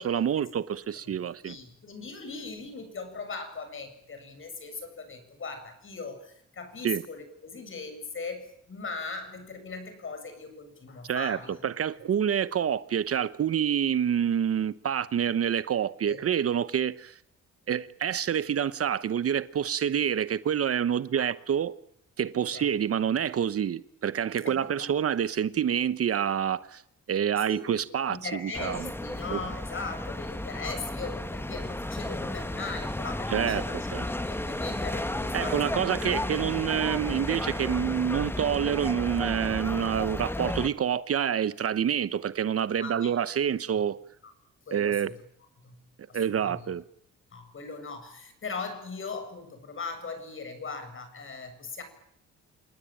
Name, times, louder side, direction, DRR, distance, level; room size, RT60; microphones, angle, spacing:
voice 1, 0.0-1.6 6.8-7.0 11.0-11.4 11.6-17.2 17.7-21.7 22.2-26.8 27.1-28.9 29.3-29.4 33.3-33.6 33.9-34.0 35.3-44.0 44.7-45.1 46.1-46.8, right 9 dB, 50° right, 1.0 m, -27 dB
voice 2, 1.4-11.7 16.0-16.2 21.1-21.2 22.5-22.7 24.5-24.9 27.4-27.8 28.1-36.0 42.8-43.1 44.2-44.3 44.7-45.1 45.6-45.8 46.1-46.6 47.3-51.8, left 4 dB, 40° left, 7.7 m, -39 dB
sound 1, 28.5-40.7, left 1 dB, 5° left, 1.3 m, -33 dB
28.0 x 19.0 x 8.9 m
cardioid pair, 90°, 30 cm